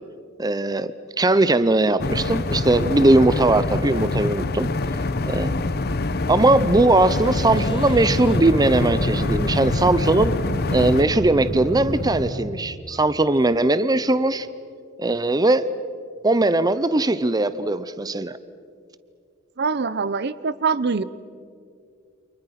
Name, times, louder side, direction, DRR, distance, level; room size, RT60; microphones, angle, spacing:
voice 1, 0.4-0.9 1.2-4.7 5.3-5.6 6.3-10.3 10.7-14.5 15.0-15.6 16.2-18.4, right 2 dB, 20° right, 14 dB, 0.6 m, -19 dB
sound 1, 2.0-11.0, left 2 dB, 50° left, 0.9 m, -25 dB
sound 2, 6.7-13.5, equal, 25° left, 3.0 m, -39 dB
sound 3, 7.3-12.3, equal, 80° left, 3.5 m, -29 dB
voice 2, 19.6-21.0, right 5 dB, 55° right, 16 dB, 0.7 m, -23 dB
29.5 x 27.0 x 5.9 m, 2.3 s
head